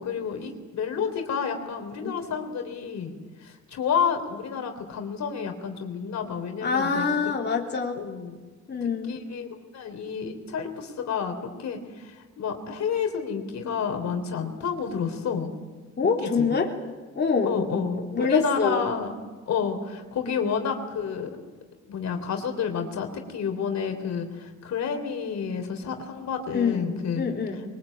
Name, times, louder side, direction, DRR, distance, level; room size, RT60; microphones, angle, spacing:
voice 1, 0.0-3.2 3.4-7.1 8.0-8.4 8.8-9.5 9.7-15.5 16.2-16.5 17.4-19.1 19.5-21.3 21.9-27.2, left 6 dB, 65° left, 5 dB, 3.5 m, -30 dB
voice 2, 2.0-2.4 6.6-8.0 8.7-9.2 16.0-16.7 17.2-17.6 18.1-18.8 20.2-20.5 26.5-26.9 27.2-27.6, left 5 dB, 35° left, -1 dB, 3.5 m, -25 dB
23.0 x 22.0 x 8.7 m, 1.3 s
cardioid pair, 90°, 30 cm